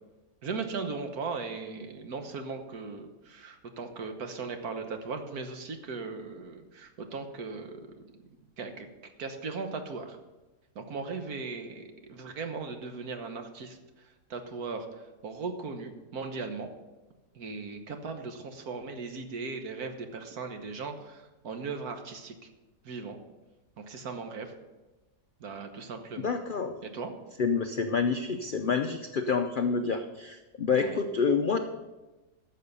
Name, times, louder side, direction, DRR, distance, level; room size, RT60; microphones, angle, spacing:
voice 1, 0.4-7.8 8.6-10.2 10.7-11.8 12.1-16.7 17.3-22.3 22.8-23.2 23.8-24.5 25.4-26.3 26.8-27.1 30.8-31.0, right 4 dB, 65° right, 6 dB, 1.6 m, -38 dB
voice 2, 26.2-26.7 27.4-31.6, left 5 dB, 85° left, 6 dB, 0.4 m, -28 dB
13.0 x 6.9 x 5.5 m, 1.1 s
omnidirectional pair, 1.7 m